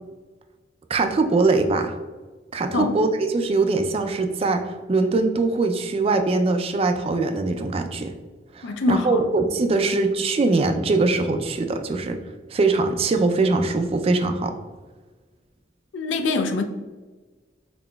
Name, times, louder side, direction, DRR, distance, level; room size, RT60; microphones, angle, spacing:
voice 1, 0.9-2.0 2.5-4.6 4.9-8.1 8.5-12.2 12.5-14.6, right 3 dB, 30° right, 0.3 m, -22 dB
voice 2, 8.6-9.3 15.9-16.6, left 3 dB, 75° left, 0.4 m, -24 dB
4.0 x 3.8 x 2.2 m
head